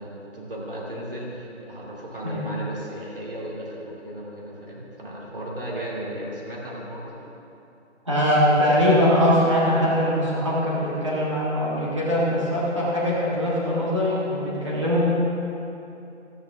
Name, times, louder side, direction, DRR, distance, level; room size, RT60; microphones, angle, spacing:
voice 1, 0.0-7.1, right 1 dB, 50° right, -4 dB, 2.5 m, -35 dB
voice 2, 8.0-15.0, equal, 25° right, -8 dB, 1.6 m, -22 dB
14.5 x 9.7 x 3.5 m, 2.8 s
hypercardioid pair, 180°, 36 cm